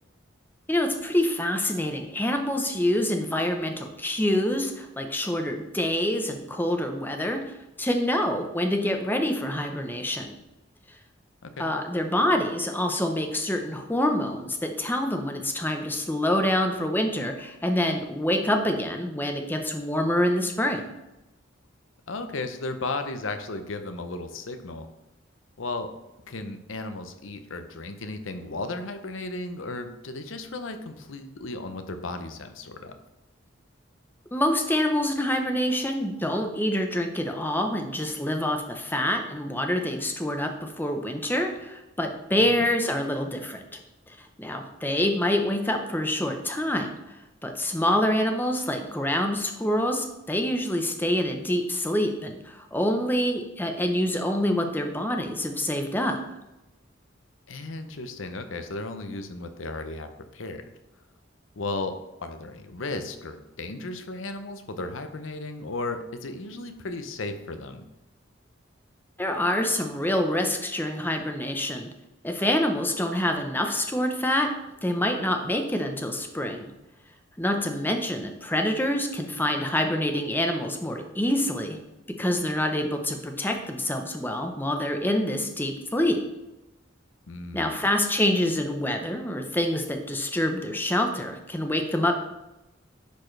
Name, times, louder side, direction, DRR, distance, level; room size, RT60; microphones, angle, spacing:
voice 1, 0.7-7.4 7.8-10.4 11.6-20.8 34.3-43.6 44.2-56.2 69.2-71.9 72.2-74.5 74.8-76.7 77.4-81.8 82.2-86.2 87.5-92.2, left 1 dB, 10° left, 4 dB, 0.8 m, -26 dB
voice 2, 22.1-24.9 25.6-25.9 26.3-32.9 42.4-42.6 57.5-60.6 61.6-61.9 62.2-67.8 87.3-87.8, left 2 dB, 80° left, 8 dB, 0.8 m, -35 dB
10.5 x 4.4 x 3.3 m, 0.95 s
head